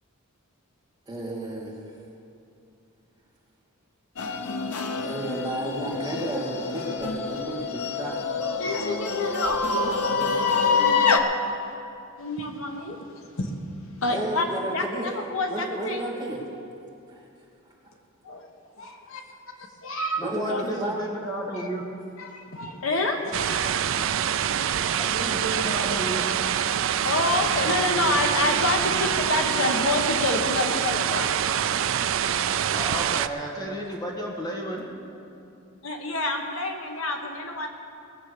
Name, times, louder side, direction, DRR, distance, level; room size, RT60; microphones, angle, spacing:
voice 1, 1.1-1.7 5.0-8.2 9.6-10.3 14.1-15.1 15.5-16.4 17.1-17.2 20.2-20.9, right 1 dB, 20° right, -5 dB, 2.4 m, -32 dB
sound 1, 4.2-11.2, left 5 dB, 90° left, 0.9 m, -26 dB
voice 2, 8.6-9.6 10.7-11.2 12.2-13.1 13.4-13.5 14.0-16.0 18.2-18.5 18.8-19.2 19.8-20.2 20.5-20.6 21.6-21.7 22.2-24.1 27.0-31.4 35.8-37.7, left 2 dB, 65° left, 3 dB, 1.3 m, -28 dB
voice 3, 20.2-21.8 25.0-26.3 32.7-34.9, right 1 dB, 15° left, -2 dB, 1.5 m, -32 dB
sound 2, 23.3-33.3, right 9 dB, 60° right, 0.4 m, -25 dB
19.5 x 7.5 x 6.8 m, 2.6 s
head